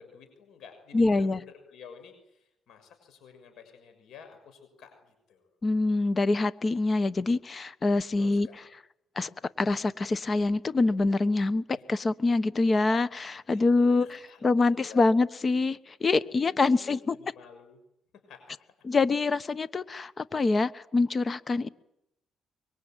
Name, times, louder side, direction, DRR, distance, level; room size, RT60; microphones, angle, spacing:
voice 1, 0.0-5.5 8.2-8.7 11.7-11.8 12.4-12.5 13.5-15.1 16.1-17.8 18.3-18.7, left 6 dB, 75° left, 6 dB, 6.3 m, -51 dB
voice 2, 0.9-1.4 5.6-8.5 9.2-9.3 9.6-14.1 14.4-17.2 18.8-21.7, left 3 dB, 35° left, 16 dB, 1.2 m, -25 dB
25.0 x 22.5 x 9.1 m, 0.83 s
cardioid pair, 90°, 0 cm